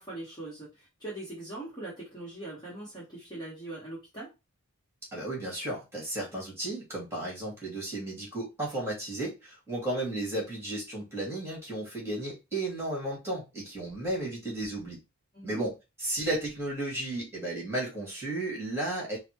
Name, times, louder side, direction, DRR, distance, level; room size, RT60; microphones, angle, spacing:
voice 1, 0.0-4.3 15.3-15.6, right 2 dB, 20° left, -5 dB, 1.1 m, -41 dB
voice 2, 5.1-15.0 15.4-19.2, right 1 dB, 10° right, -4 dB, 1.8 m, -34 dB
4.0 x 2.1 x 3.0 m, 0.24 s
head